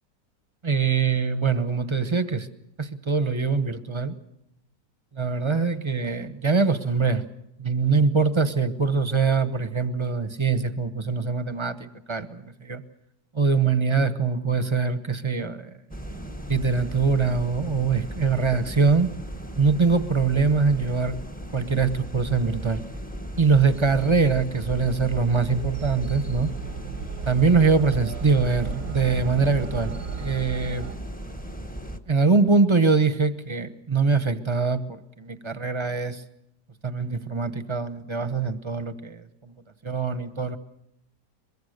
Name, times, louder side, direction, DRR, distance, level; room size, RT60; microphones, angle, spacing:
voice 1, 0.6-2.5 2.8-4.1 5.1-7.2 7.6-12.8 13.3-15.7 16.5-19.1 19.6-21.2 21.5-22.8 23.4-26.5 27.3-30.9 32.1-36.2 36.8-39.5 39.8-40.6, right 4 dB, 20° right, 12 dB, 0.9 m, -23 dB
sound 1, 15.9-32.0, right 1 dB, 5° left, 0.9 m, -37 dB
sound 2, 24.6-31.0, right 7 dB, 45° right, 1.0 m, -35 dB
23.5 x 22.0 x 6.7 m, 0.84 s
omnidirectional pair, 1.9 m